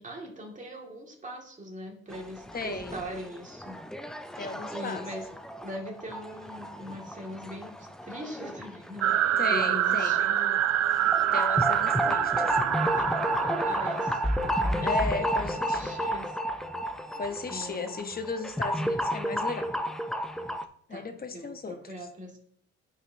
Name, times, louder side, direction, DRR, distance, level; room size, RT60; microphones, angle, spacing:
voice 1, 0.0-3.8 4.7-5.3 5.6-10.6 13.0-14.2 14.6-16.4 17.4-18.1 20.9-22.4, equal, 25° right, 0 dB, 2.0 m, -41 dB
sound 1, 2.1-20.6, equal, ahead, 0.4 m, -32 dB
voice 2, 2.5-3.0 4.3-5.0 9.4-10.2 11.3-12.6 14.8-16.0 17.2-19.7 20.9-21.8, left 4 dB, 30° left, 8 dB, 0.9 m, -35 dB
sound 2, 9.0-14.8, right 11 dB, 55° right, 0.4 m, -26 dB
9.8 x 4.8 x 2.7 m, 0.62 s
cardioid pair, 90°, 30 cm